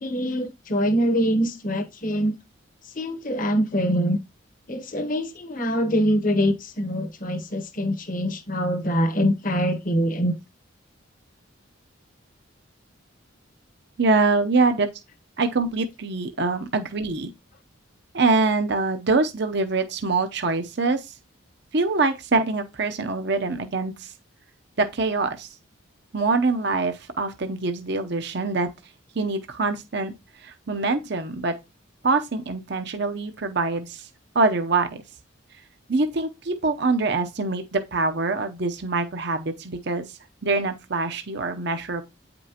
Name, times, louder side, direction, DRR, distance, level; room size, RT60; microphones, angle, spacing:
voice 1, 0.0-2.3 2.8-4.2 4.7-10.4, equal, 40° left, 1.0 m, -24 dB
voice 2, 14.0-14.9 15.4-17.3 18.1-21.1 21.7-24.1 24.8-25.5 26.1-28.7 29.1-30.1 30.4-31.5 32.0-34.1 34.3-34.9 35.9-40.1 40.4-42.0, right 3 dB, 55° right, 0.7 m, -24 dB
9.0 x 5.3 x 2.9 m
head